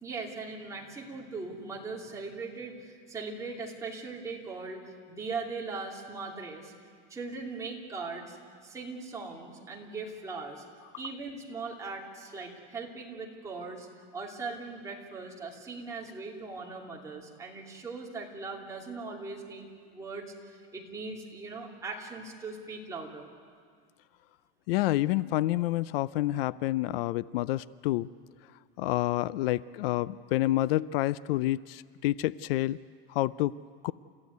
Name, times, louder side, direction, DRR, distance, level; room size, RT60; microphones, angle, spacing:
voice 1, 0.0-6.7 7.1-8.4 8.6-10.6 11.0-13.9 14.1-19.6 19.9-23.3, right 4 dB, 10° right, -2 dB, 2.8 m, -39 dB
voice 2, 24.7-28.1 28.8-32.8 33.1-33.5 33.8-33.9, left 16 dB, 75° left, 18 dB, 0.5 m, -28 dB
30.0 x 15.0 x 9.5 m, 2.1 s
supercardioid pair, 165°, 29 cm